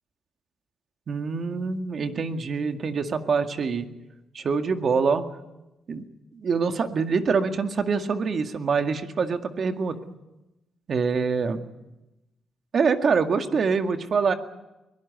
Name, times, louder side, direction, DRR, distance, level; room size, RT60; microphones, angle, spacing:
voice 1, 1.1-3.9 4.3-5.3 5.9-6.0 6.3-10.0 10.9-11.6 12.7-14.3, right 5 dB, 55° right, 6 dB, 2.0 m, -25 dB
22.5 x 17.5 x 9.6 m, 0.98 s
cardioid pair, 85°, 0 cm